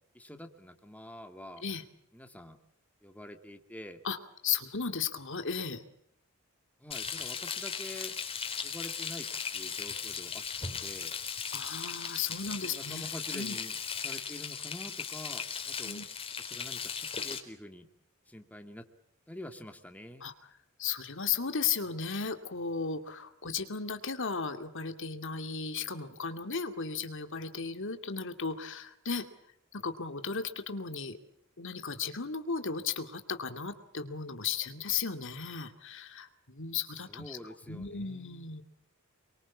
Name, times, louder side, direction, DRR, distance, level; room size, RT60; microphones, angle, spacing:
voice 1, 0.1-1.6 2.1-2.6 3.0-4.0 6.8-8.2 8.6-9.3 9.5-11.1 12.6-16.1 16.4-17.9 18.3-18.8 19.3-20.2 37.1-38.5, left 1 dB, 5° left, 5 dB, 2.4 m, -46 dB
voice 2, 4.4-5.8 11.5-13.1 13.3-13.6 15.8-16.0 20.2-20.3 20.8-29.3 29.7-31.2 31.6-37.4 37.7-38.6, left 6 dB, 60° left, 7 dB, 2.4 m, -35 dB
Frying (food), 6.9-17.4, left 6 dB, 25° left, 3.9 m, -37 dB
28.5 x 24.0 x 7.3 m, 0.69 s
head